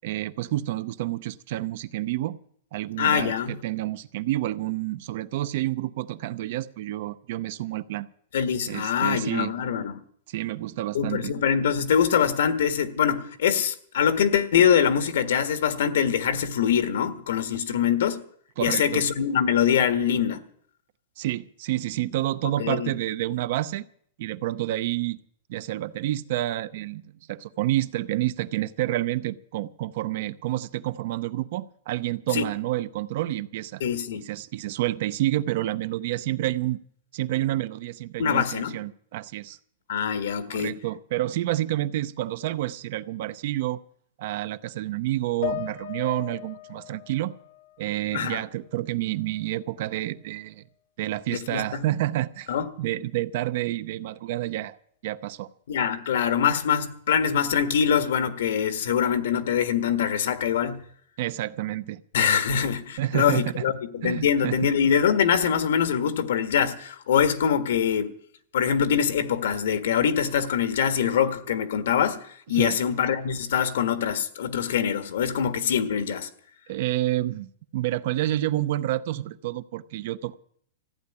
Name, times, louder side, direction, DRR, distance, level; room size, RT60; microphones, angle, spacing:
voice 1, 0.0-2.4 2.7-8.1 8.7-9.5 10.3-11.3 18.6-19.1 21.2-23.8 24.2-25.2 25.5-33.8 34.2-36.8 37.1-39.6 40.5-43.8 44.2-47.3 47.8-50.6 51.0-52.5 52.8-54.8 55.0-55.5 61.2-62.0 63.0-63.6 64.0-64.6 72.5-72.8 76.7-80.3, right 15 dB, 50° right, 0.6 m, -29 dB
voice 2, 3.0-3.6 8.3-9.9 10.9-18.2 18.6-20.4 22.6-22.9 32.3-32.4 33.8-34.2 38.2-38.7 39.9-40.8 48.1-48.4 51.3-51.6 52.5-52.7 55.7-60.8 62.1-68.1 68.5-72.2 72.5-76.3, left 8 dB, 75° left, 1.5 m, -24 dB
sound 1, 45.4-48.8 49.2-50.3, left 11 dB, 50° left, 0.9 m, -38 dB
14.5 x 8.0 x 9.8 m
supercardioid pair, 170°, 0 cm